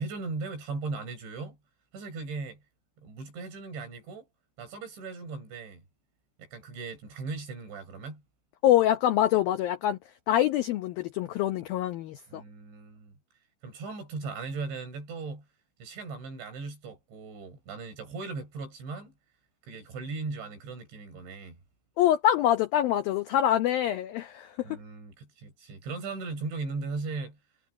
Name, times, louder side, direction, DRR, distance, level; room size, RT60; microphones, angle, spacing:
voice 1, 0.0-1.6 1.9-2.6 3.0-4.3 4.6-5.8 6.4-8.2 12.3-13.1 13.6-15.5 15.8-19.1 19.6-21.6 24.6-27.4, right 4 dB, 70° right, 9.0 m, -38 dB
voice 2, 8.6-10.0 10.3-12.4 22.0-24.8, left 12 dB, 90° left, 2.0 m, -25 dB
omnidirectional pair, 5.5 m